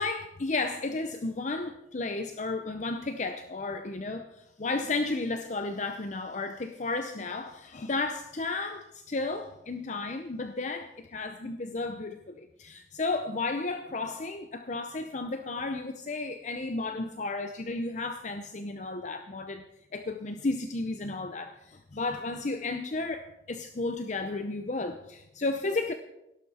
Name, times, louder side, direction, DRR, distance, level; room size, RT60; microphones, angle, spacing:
voice 1, 0.0-19.6 19.9-25.9, left 3 dB, 40° left, 8 dB, 0.7 m, -33 dB
17.0 x 12.0 x 4.3 m, 0.87 s
head